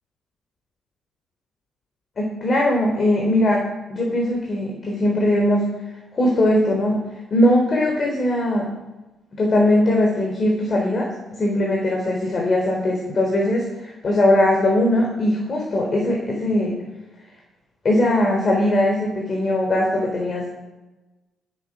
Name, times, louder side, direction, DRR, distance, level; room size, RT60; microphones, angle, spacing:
voice 1, 2.2-3.6 3.9-5.7 6.1-7.0 7.3-8.7 9.3-16.7 17.8-20.5, left 1 dB, 40° left, 0 dB, 3.8 m, -20 dB
19.5 x 9.3 x 5.1 m, 1.1 s
cardioid pair, 90°, 0 cm